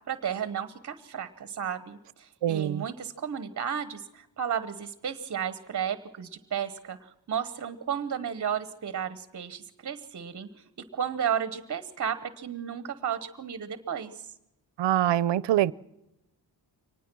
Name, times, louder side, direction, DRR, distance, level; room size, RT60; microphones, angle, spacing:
voice 1, 0.1-10.6 10.9-14.3, right 8 dB, 45° right, 1.0 m, -33 dB
voice 2, 2.4-2.8 14.8-15.7, right 12 dB, 85° right, 0.7 m, -24 dB
24.0 x 19.5 x 6.1 m
wide cardioid pair, 160°, 42 cm